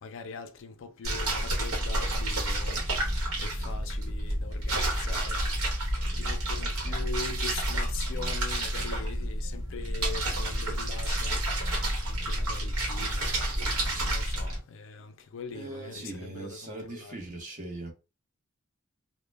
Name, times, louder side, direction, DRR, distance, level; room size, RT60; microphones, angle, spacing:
voice 1, 0.0-2.8 3.4-5.4 6.2-11.4 12.1-13.4 14.0-17.2, left 4 dB, 60° left, 0.4 m, -42 dB
sound 1, 1.0-14.6, right 1 dB, 80° right, 1.0 m, -30 dB
voice 2, 15.5-17.9, right 2 dB, 35° right, 0.8 m, -40 dB
2.2 x 2.1 x 3.2 m
head